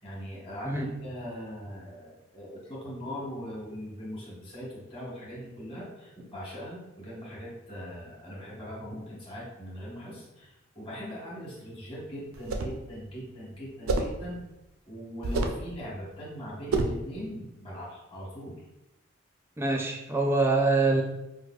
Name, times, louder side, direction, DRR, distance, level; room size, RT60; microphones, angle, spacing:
voice 1, 0.0-14.4 14.9-18.6, equal, 25° left, -6 dB, 1.2 m, -40 dB
sound 1, 12.3-12.8 13.9-14.2 15.2-15.7 16.7-17.0, right 2 dB, 90° right, 0.4 m, -28 dB
voice 2, 19.6-21.0, right 3 dB, 10° right, 2 dB, 0.3 m, -24 dB
4.6 x 2.3 x 2.3 m, 0.94 s
head